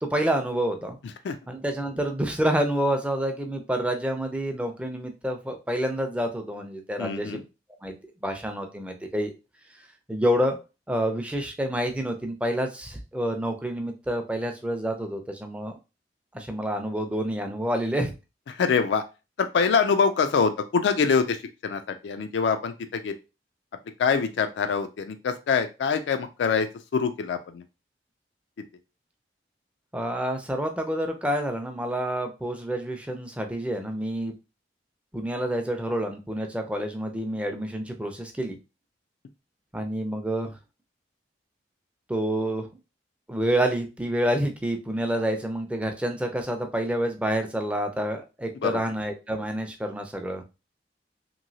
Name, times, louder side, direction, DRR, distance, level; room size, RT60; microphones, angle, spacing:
voice 1, 0.0-1.0 1.5-7.4 7.8-7.9 8.2-9.3 10.1-10.6 10.9-15.8 16.3-18.1 29.9-34.3 35.1-38.6 39.7-40.5 42.1-42.7 43.3-50.4, right 1 dB, 5° right, 4 dB, 0.4 m, -28 dB
voice 2, 7.0-7.4 18.5-19.0 19.4-23.1 24.0-26.7 26.9-27.6 48.6-48.8, left 5 dB, 85° left, 8 dB, 0.3 m, -24 dB
3.0 x 2.7 x 2.6 m, 0.29 s
head